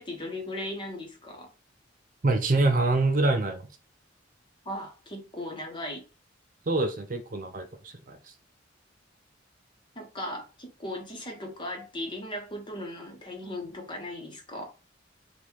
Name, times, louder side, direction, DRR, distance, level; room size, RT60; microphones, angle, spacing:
voice 1, 0.0-1.5 4.6-6.1 9.9-14.7, left 1 dB, 25° left, 1.0 m, -37 dB
voice 2, 2.2-3.6 6.7-8.2, right 2 dB, 45° right, 0.6 m, -25 dB
3.7 x 2.5 x 4.6 m
head